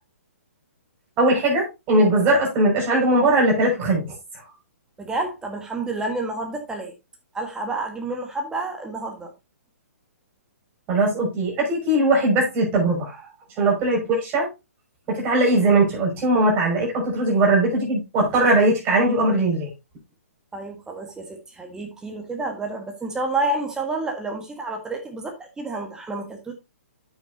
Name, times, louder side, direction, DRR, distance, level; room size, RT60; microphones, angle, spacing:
voice 1, 1.2-4.1 10.9-13.2 13.6-14.5 15.1-19.7, right 2 dB, 25° right, 5.8 m, -20 dB
voice 2, 5.0-6.9 7.3-9.3 20.5-26.5, right 2 dB, 10° right, 1.4 m, -29 dB
8.9 x 8.3 x 2.7 m
figure-of-eight pair, 130°, 8 cm